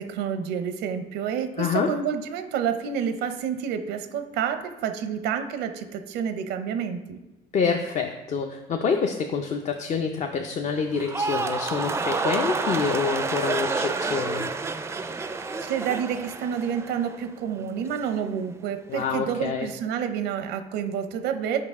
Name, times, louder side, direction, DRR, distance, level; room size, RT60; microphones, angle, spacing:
voice 1, 0.0-7.2 15.6-21.6, right 8 dB, 85° right, 8 dB, 0.6 m, -29 dB
voice 2, 1.6-1.9 7.5-14.5 18.9-19.7, left 5 dB, 45° left, 4 dB, 0.5 m, -27 dB
sound 1, 10.9-17.3 17.6-18.1, right 4 dB, 15° right, 0.4 m, -29 dB
6.7 x 5.2 x 3.6 m, 1.0 s
cardioid pair, 110°, 17 cm